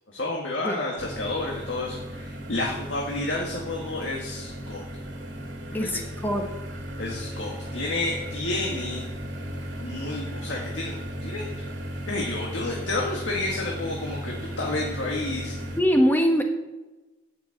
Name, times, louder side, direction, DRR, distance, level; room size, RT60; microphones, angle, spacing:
voice 1, 0.1-4.8 5.7-5.9 7.0-9.0 9.8-10.9 11.2-11.5 12.1-15.6, left 2 dB, 75° left, -2 dB, 1.9 m, -30 dB
sound 1, 1.0-15.8, equal, 75° right, 2.3 m, -36 dB
voice 2, 5.7-6.5 15.8-16.4, equal, 10° left, 3 dB, 1.3 m, -22 dB
9.4 x 6.8 x 7.9 m, 1.1 s
head